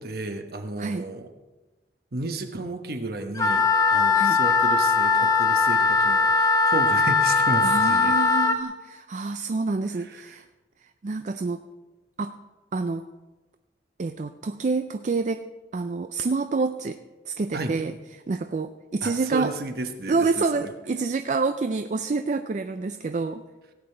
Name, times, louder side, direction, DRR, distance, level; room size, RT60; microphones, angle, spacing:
voice 1, 0.0-1.3 2.1-8.2 9.9-10.4 17.5-17.7 19.0-20.7, right 2 dB, 60° right, 6 dB, 1.1 m, -33 dB
Wind instrument woodwind instrument, 3.4-8.6, left 4 dB, 20° left, 0.8 m, -20 dB
voice 2, 7.6-10.4 11.0-11.6 12.2-12.4 12.7-13.1 14.0-15.5 15.7-17.0 17.3-17.9 18.3-19.5 20.1-23.4, right 4 dB, 45° right, 9 dB, 0.4 m, -27 dB
17.0 x 8.5 x 4.4 m, 1.2 s
head